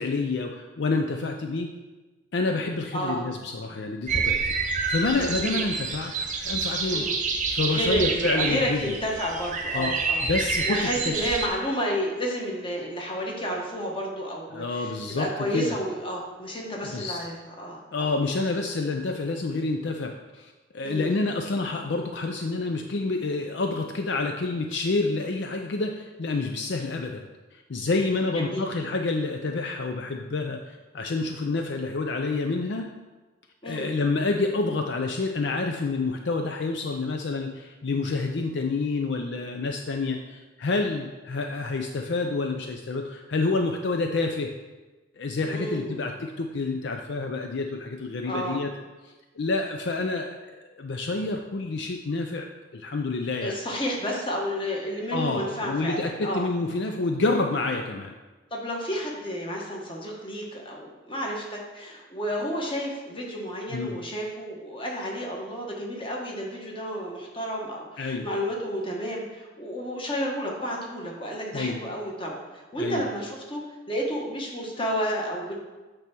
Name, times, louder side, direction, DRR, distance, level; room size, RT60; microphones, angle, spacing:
voice 1, 0.0-1.7 2.3-4.6 4.9-6.2 6.4-7.1 7.5-8.9 9.7-9.9 10.2-11.2 14.5-15.7 16.9-17.2 17.9-32.9 33.6-44.5 45.2-48.7 49.4-50.4 50.8-52.5 52.7-53.5 55.1-58.1 63.7-64.0 68.0-68.3 71.5-71.8 72.8-73.0, left 3 dB, 65° left, 4 dB, 0.5 m, -28 dB
voice 2, 2.9-3.2 5.2-5.6 6.9-7.2 7.7-10.2 10.6-18.1 20.8-21.4 28.1-28.6 33.6-33.9 45.5-46.0 48.2-48.6 53.4-56.5 58.5-73.6 73.9-75.5, equal, 25° left, -1 dB, 1.3 m, -31 dB
sound 1, 4.1-11.5, right 4 dB, 40° right, 0.8 m, -28 dB
8.7 x 3.5 x 6.0 m, 1.2 s
head